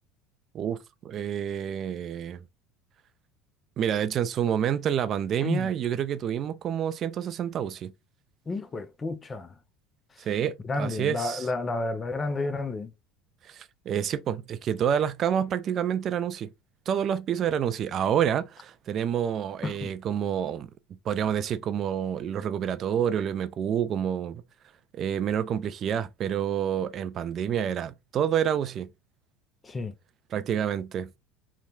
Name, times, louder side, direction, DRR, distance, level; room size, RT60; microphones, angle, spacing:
voice 1, 0.5-2.4 3.8-7.9 10.2-11.5 13.4-16.5 16.9-20.7 21.1-24.4 24.9-28.9 30.3-31.1, right 9 dB, 45° right, 0.4 m, -28 dB
voice 2, 8.5-9.5 10.6-12.9 19.6-19.9 29.6-29.9, left 3 dB, 25° left, 0.4 m, -31 dB
2.9 x 2.1 x 2.7 m
hypercardioid pair, 75°, 0 cm